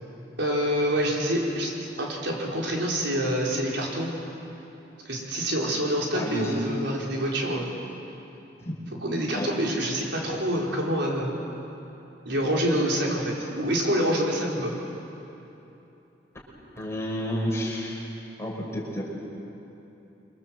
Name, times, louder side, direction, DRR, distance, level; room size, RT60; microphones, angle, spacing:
voice 1, 0.4-1.7 2.0-4.1 5.0-7.7 9.0-11.3 12.2-14.7, equal, 75° right, -3 dB, 5.0 m, -26 dB
voice 2, 6.1-6.6 8.6-8.7 9.3-9.5 16.8-18.0 18.4-19.0, equal, 15° left, -3 dB, 5.6 m, -30 dB
28.5 x 24.0 x 7.8 m, 3.0 s
head